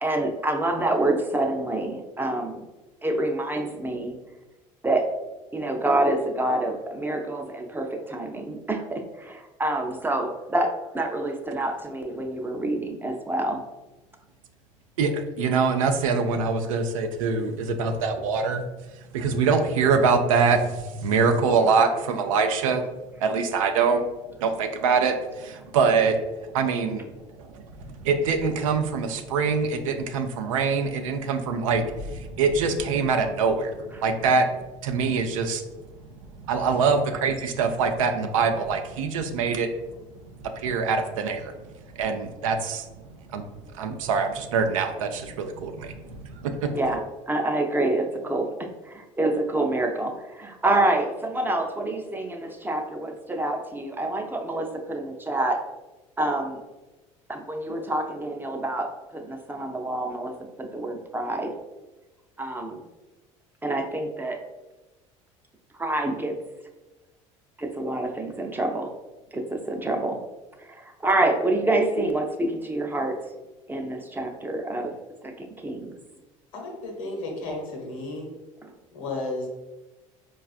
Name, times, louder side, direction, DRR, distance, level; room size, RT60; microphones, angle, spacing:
voice 1, 0.0-2.6 3.0-4.1 4.8-5.1 5.5-13.6 33.9-34.1 36.6-36.7 46.7-55.6 56.2-56.6 57.3-60.3 60.6-61.5 62.4-62.8 63.6-64.4 65.8-66.4 67.6-68.9 69.3-70.2 70.6-73.2 73.7-74.9 75.2-75.9, right 2 dB, 10° right, 3 dB, 0.5 m, -27 dB
voice 2, 15.4-18.6 19.1-20.6 21.0-22.8 23.2-24.0 24.4-25.1 25.5-26.2 26.5-27.0 28.1-31.8 32.4-33.7 34.0-34.4 34.8-35.6 36.5-39.7 40.6-41.5 42.0-42.8 43.3-43.4 43.8-45.9 46.4-46.7, right 5 dB, 80° right, 6 dB, 0.4 m, -23 dB
voice 3, 76.5-78.3 78.9-79.5, left 2 dB, 80° left, 0 dB, 0.9 m, -33 dB
4.5 x 2.3 x 2.4 m, 1.1 s
hypercardioid pair, 70°, 17 cm